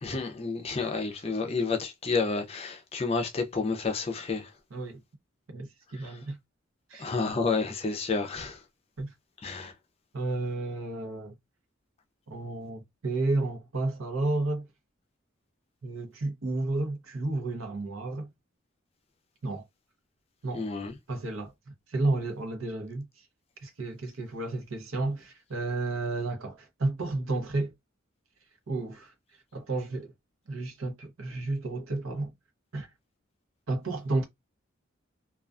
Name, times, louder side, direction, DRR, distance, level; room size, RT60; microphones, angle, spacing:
voice 1, 0.0-4.5 6.0-6.2 7.0-8.6 9.4-9.7 20.5-20.9, left 4 dB, 30° left, 0.4 m, -30 dB
voice 2, 5.5-6.4 6.9-7.1 9.0-9.1 10.1-11.3 12.3-14.7 15.8-18.3 19.4-19.6 20.4-20.7 21.1-21.5 21.9-23.1 23.6-27.7 28.7-29.1 29.5-30.1 30.5-32.3 32.7-32.9 33.7-34.3, right 2 dB, 85° right, 0.8 m, -31 dB
2.3 x 2.2 x 2.4 m
head